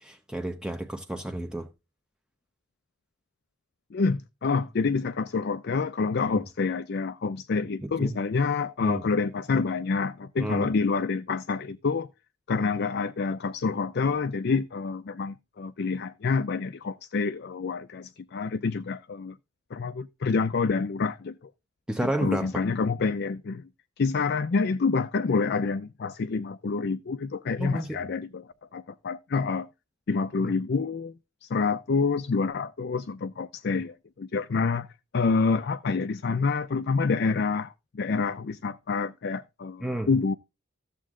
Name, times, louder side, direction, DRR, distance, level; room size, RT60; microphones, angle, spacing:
voice 1, 0.0-1.7 6.3-6.4 7.8-8.2 8.8-9.0 10.4-10.7 21.9-22.6 27.6-28.0 30.4-30.5 35.3-35.4 39.8-40.1, right 1 dB, 5° right, 0.8 m, -31 dB
voice 2, 3.9-12.1 12.5-19.4 19.7-21.3 22.0-23.6 24.0-28.4 28.7-29.7 30.1-31.1 31.4-34.9 35.1-40.4, left 4 dB, 50° left, 0.4 m, -27 dB
13.5 x 7.4 x 3.7 m
head